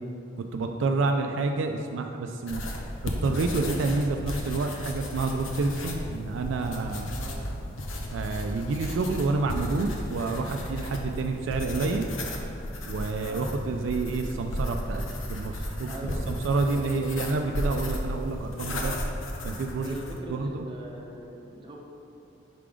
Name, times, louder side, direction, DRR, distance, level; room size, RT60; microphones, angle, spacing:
voice 1, 0.5-2.7 3.2-7.1 8.1-12.1 12.9-15.0 15.3-19.0 19.4-20.0 20.3-20.7, right 3 dB, 70° right, 4 dB, 0.3 m, -28 dB
sound 1, 2.5-20.2, left 1 dB, 85° left, 0.7 m, -34 dB
voice 2, 15.9-17.0 19.7-21.8, equal, 25° right, -1 dB, 0.7 m, -41 dB
5.8 x 3.7 x 4.9 m, 2.7 s
head